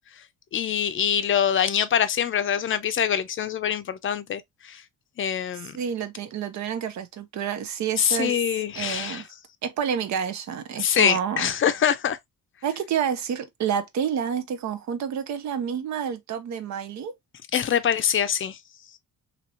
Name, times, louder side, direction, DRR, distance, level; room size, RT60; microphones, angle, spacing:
voice 1, 0.5-4.8 5.2-5.8 8.0-9.2 10.8-12.2 17.5-18.6, left 8 dB, 45° left, 0.5 m, -24 dB
voice 2, 5.7-8.4 8.8-9.2 9.6-11.5 12.6-17.1, right 8 dB, 70° right, 0.7 m, -29 dB
2.9 x 2.8 x 2.7 m
cardioid pair, 90°, 30 cm